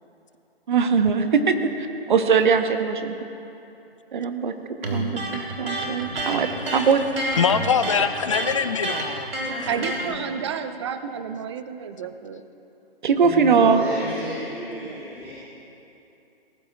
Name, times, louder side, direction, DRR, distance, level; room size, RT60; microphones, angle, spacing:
voice 1, 0.7-1.5 2.1-3.2 4.1-4.5 4.9-7.0 13.0-13.8, right 6 dB, 50° right, 8 dB, 1.1 m, -21 dB
Electric guitar, 4.8-10.1, right 2 dB, 65° right, 2.8 m, -29 dB
voice 2, 7.4-9.3 9.6-9.7, left 7 dB, 30° left, 12 dB, 0.4 m, -23 dB
voice 3, 9.7-12.4 14.8-15.0, right 7 dB, 25° right, 10 dB, 0.6 m, -31 dB
voice 4, 13.2-15.3, equal, 5° right, -12 dB, 2.6 m, -32 dB
21.5 x 18.5 x 2.5 m, 2.8 s
figure-of-eight pair, 135°, 31 cm